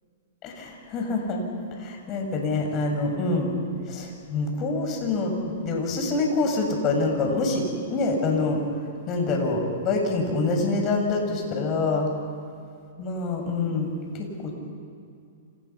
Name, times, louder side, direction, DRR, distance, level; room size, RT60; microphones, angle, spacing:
voice 1, 0.4-1.4 1.8-3.5 3.9-8.6 9.1-12.1 13.0-14.5, left 3 dB, 35° left, 3 dB, 6.8 m, -26 dB
29.0 x 28.5 x 5.9 m, 2.5 s
hypercardioid pair, 125°, 0 cm